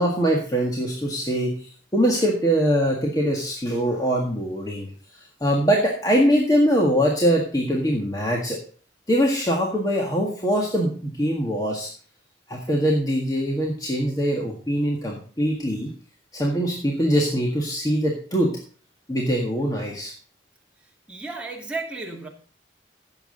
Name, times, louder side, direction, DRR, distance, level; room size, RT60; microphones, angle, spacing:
voice 1, 0.0-4.9 5.4-8.6 9.1-11.9 12.5-15.9 16.3-18.6 19.1-20.1, equal, 20° left, -1 dB, 1.7 m, -22 dB
voice 2, 21.1-22.3, right 3 dB, 5° right, -1 dB, 2.2 m, -33 dB
15.5 x 7.3 x 3.9 m, 0.41 s
head